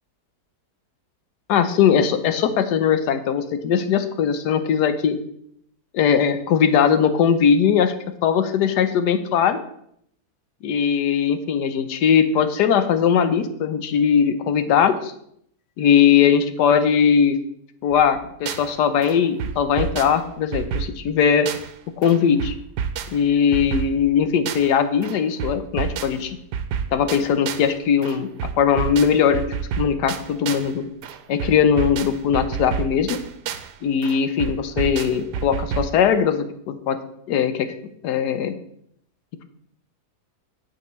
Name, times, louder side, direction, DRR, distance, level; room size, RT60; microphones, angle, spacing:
voice 1, 1.5-5.2 5.9-7.9 8.2-9.6 10.6-15.1 15.8-17.4 17.8-21.5 22.0-22.5 23.1-26.4 26.9-28.3 28.6-29.4 29.8-30.8 31.3-33.2 33.8-37.0 37.3-37.7 38.0-38.5, left 7 dB, 85° left, 10 dB, 1.3 m, -19 dB
sound 1, 17.9-18.7 19.0-21.8 22.0-24.8 25.0-27.7 28.0-30.7 31.0-33.7 34.0-36.0, right 7 dB, 90° right, 1.2 m, -30 dB
8.8 x 7.0 x 3.1 m, 0.70 s
omnidirectional pair, 1.7 m